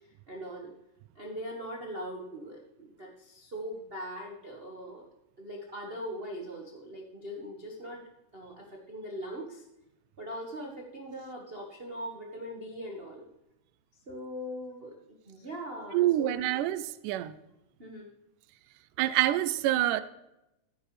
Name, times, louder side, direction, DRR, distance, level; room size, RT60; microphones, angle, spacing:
voice 1, 0.3-0.7 1.1-5.0 5.4-8.0 8.3-9.7 10.2-13.2 14.1-14.9 15.2-16.6 17.8-18.1, equal, 50° right, -1 dB, 0.7 m, -41 dB
voice 2, 15.9-17.3 19.0-20.0, right 13 dB, 90° right, 14 dB, 2.2 m, -26 dB
14.0 x 9.4 x 3.2 m, 0.91 s
omnidirectional pair, 3.6 m